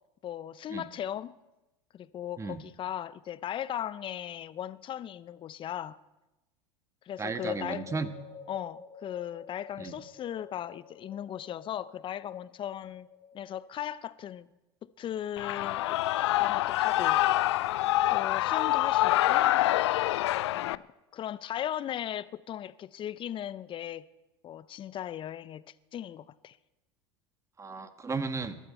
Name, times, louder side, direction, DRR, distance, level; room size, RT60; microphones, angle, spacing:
voice 1, 0.2-1.4 1.9-6.0 7.1-7.8 8.5-13.1 13.3-14.5 14.8-16.0 16.4-17.2 18.1-19.5 20.5-20.8 21.1-24.0 24.4-25.6 25.9-26.6, left 10 dB, 35° left, 0.7 m, -37 dB
voice 2, 7.2-8.1 9.8-10.0 27.6-28.6, right 4 dB, 20° right, 1.5 m, -34 dB
sound 1, 7.3-13.8, left 5 dB, 85° right, 5.7 m, -50 dB
Shout / Cheering, 15.4-20.8, left 15 dB, 75° left, 0.4 m, -26 dB
21.5 x 13.0 x 4.4 m
hypercardioid pair, 80°, 14 cm